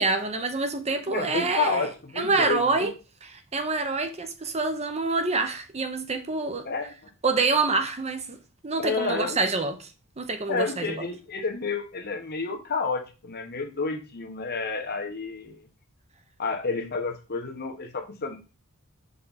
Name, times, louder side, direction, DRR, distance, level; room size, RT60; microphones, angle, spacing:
voice 1, 0.0-1.9 2.2-2.9 3.2-6.7 7.2-8.4 8.6-9.9 10.2-11.0, right 3 dB, 30° right, 0.8 m, -26 dB
voice 2, 1.0-2.9 6.6-6.9 8.8-9.4 10.5-15.7 16.4-18.4, left 4 dB, 45° left, 1.2 m, -30 dB
5.8 x 5.5 x 4.1 m
head